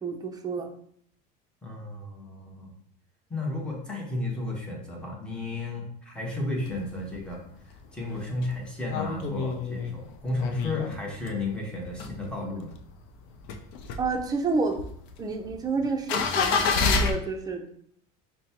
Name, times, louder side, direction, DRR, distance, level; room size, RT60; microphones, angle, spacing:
voice 1, 0.0-0.7 14.0-14.8 15.2-17.7, right 4 dB, 20° right, 3 dB, 0.6 m, -29 dB
voice 2, 1.6-2.7 3.3-7.4 7.9-12.7, left 2 dB, 5° left, -2 dB, 1.1 m, -33 dB
sound 1, 6.6-7.3 7.7-7.8 8.0-11.5 11.8-12.8 13.2-17.1, left 5 dB, 65° left, 0.5 m, -28 dB
5.2 x 2.2 x 2.9 m, 0.64 s
supercardioid pair, 120°, 20 cm